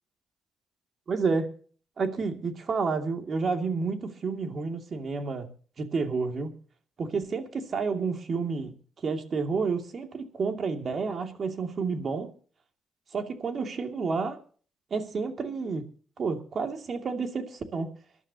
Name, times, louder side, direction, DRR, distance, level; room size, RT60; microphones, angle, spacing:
voice 1, 1.1-1.5 2.0-5.5 5.8-6.5 7.0-8.7 9.0-12.3 13.1-14.4 14.9-15.8 16.2-17.9, right 4 dB, 45° right, 5 dB, 2.5 m, -30 dB
25.0 x 12.0 x 2.9 m, 0.42 s
cardioid pair, 90°, 0 cm